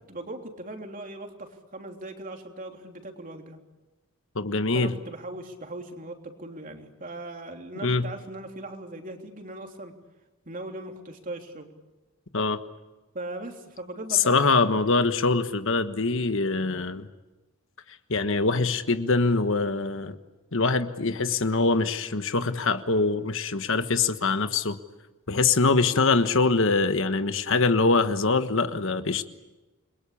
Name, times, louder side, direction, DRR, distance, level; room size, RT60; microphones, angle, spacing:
voice 1, 0.1-3.6 4.7-9.9 10.4-11.7 13.1-14.9, right 2 dB, 40° right, 3 dB, 3.4 m, -39 dB
voice 2, 4.3-4.9 7.8-8.1 12.3-12.6 14.1-17.1 18.1-20.1 20.5-24.8 25.3-29.2, left 3 dB, 60° left, 9 dB, 1.4 m, -23 dB
29.0 x 22.5 x 8.6 m, 1.1 s
head